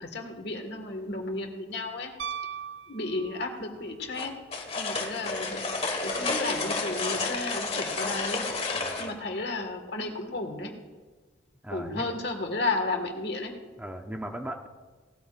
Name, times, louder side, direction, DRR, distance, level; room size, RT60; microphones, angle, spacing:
voice 1, 0.0-2.1 2.9-4.3 4.8-5.6 6.0-8.4 9.0-10.7 11.7-13.5, left 2 dB, 55° left, 4 dB, 1.7 m, -33 dB
Piano, 2.2-3.8 6.1-6.2, right 7 dB, 60° right, 0.3 m, -38 dB
sound 1, 4.2-9.1, left 3 dB, 30° left, 1.5 m, -31 dB
voice 2, 8.7-9.2 11.6-12.1 13.8-14.7, right 1 dB, 5° right, 3 dB, 0.7 m, -38 dB
18.0 x 13.5 x 2.5 m, 1.4 s
head